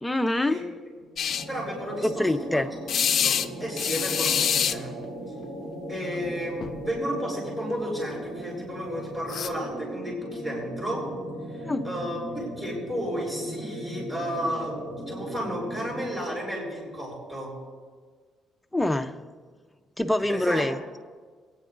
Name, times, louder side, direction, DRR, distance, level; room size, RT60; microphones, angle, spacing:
voice 1, 0.0-0.6 2.0-2.7 11.6-11.9 18.7-19.1 20.0-20.8, left 1 dB, 5° left, 7 dB, 0.6 m, -25 dB
voice 2, 1.0-2.6 3.2-4.9 5.9-11.0 11.5-17.5 20.3-20.7, equal, 20° right, -4 dB, 3.5 m, -33 dB
sound 1, 1.2-1.4 2.9-3.5 3.8-4.8 6.1-6.3 6.6-6.8 9.3-9.5, left 8 dB, 55° left, 0.5 m, -25 dB
sound 2, 1.3-16.4, right 1 dB, 55° right, 2.4 m, -38 dB
22.5 x 9.3 x 2.5 m, 1.5 s
cardioid pair, 105°, 0 cm